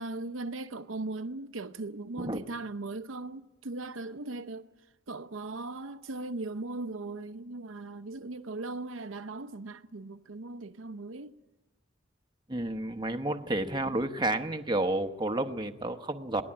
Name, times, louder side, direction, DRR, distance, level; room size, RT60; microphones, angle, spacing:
voice 1, 0.0-4.7 5.1-11.4, right 2 dB, 90° right, 0.8 m, -38 dB
voice 2, 12.5-16.4, right 2 dB, 25° right, 0.9 m, -31 dB
22.0 x 17.5 x 8.7 m
head